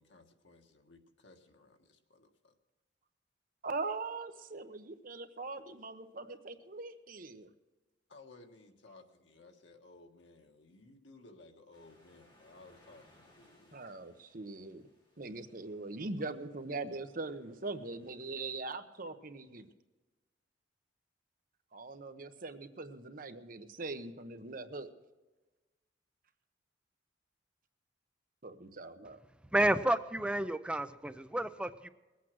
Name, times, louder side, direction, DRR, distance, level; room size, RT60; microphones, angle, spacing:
voice 1, 0.0-2.6 8.1-13.8, left 2 dB, 90° left, 4 dB, 1.6 m, -58 dB
voice 2, 3.6-7.5 13.7-14.8 15.2-19.7 21.7-24.9 28.4-29.2, right 3 dB, 50° right, 8 dB, 1.0 m, -41 dB
sound 1, 11.7-18.1, left 1 dB, 25° left, 3.4 m, -67 dB
voice 3, 29.5-31.9, right 1 dB, 5° right, 11 dB, 0.4 m, -31 dB
20.0 x 8.5 x 6.2 m, 1.2 s
head